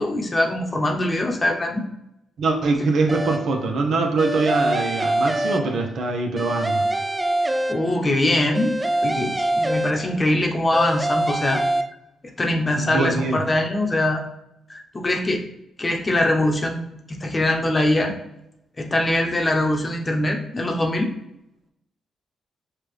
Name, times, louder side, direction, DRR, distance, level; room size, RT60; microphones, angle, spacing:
voice 1, 0.0-1.8 7.7-11.6 12.4-14.2 14.7-15.4 15.8-18.1 18.8-21.1, left 1 dB, 30° left, 2 dB, 0.8 m, -22 dB
voice 2, 2.4-6.9 12.7-13.4, right 3 dB, 70° right, 3 dB, 0.7 m, -23 dB
sound 1, 3.1-3.7 4.2-6.0 6.4-8.2 8.5-10.3 10.7-11.8, right 1 dB, 15° right, 0.4 m, -25 dB
5.8 x 2.3 x 3.3 m, 0.84 s
supercardioid pair, 60°, 0 cm